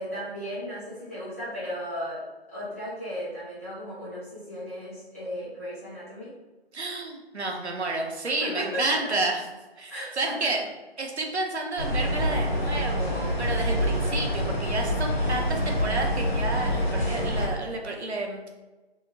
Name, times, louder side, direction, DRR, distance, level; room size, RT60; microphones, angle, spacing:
voice 1, 0.0-6.3 8.4-9.1 9.9-10.5, equal, 15° left, -13 dB, 0.7 m, -35 dB
voice 2, 6.7-9.4 9.8-10.6 11.0-18.5, right 2 dB, 85° right, 2 dB, 0.7 m, -30 dB
sound 1, 11.8-17.5, equal, 45° left, 1.1 m, -26 dB
2.7 x 2.1 x 2.7 m, 1.2 s
figure-of-eight pair, 160°, 33 cm